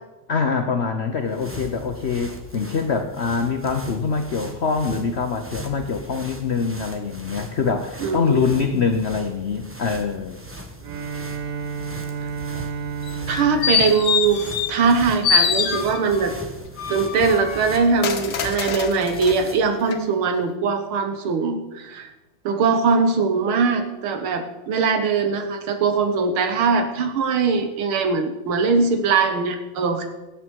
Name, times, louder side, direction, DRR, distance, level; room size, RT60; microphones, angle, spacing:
voice 1, 0.3-10.4, left 5 dB, 80° left, 5 dB, 0.6 m, -24 dB
sound 1, 1.0-19.8, right 1 dB, 15° right, 0.4 m, -39 dB
voice 2, 8.0-8.4 13.3-14.4 14.7-16.3 16.9-22.1 22.5-30.1, right 5 dB, 80° right, 7 dB, 2.0 m, -21 dB
Bowed string instrument, 10.8-15.1, right 5 dB, 60° right, 1.2 m, -32 dB
sound 2, 13.1-15.0 15.2-16.3 16.8-19.4 19.9-20.0, left 7 dB, 60° left, 1.3 m, -24 dB
16.5 x 8.3 x 4.7 m, 1.1 s
omnidirectional pair, 2.3 m